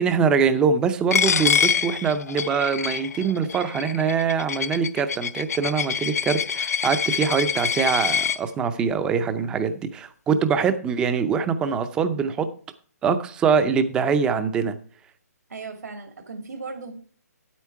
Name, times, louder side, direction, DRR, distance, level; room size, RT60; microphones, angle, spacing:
voice 1, 0.0-12.5 13.0-14.7, right 6 dB, 10° right, 11 dB, 0.5 m, -23 dB
Coin (dropping), 1.1-8.4, left 7 dB, 65° left, 0.6 m, -25 dB
voice 2, 15.5-16.9, right 4 dB, 75° right, 5 dB, 2.5 m, -36 dB
9.5 x 8.4 x 4.6 m, 0.43 s
hypercardioid pair, 160°, 9 cm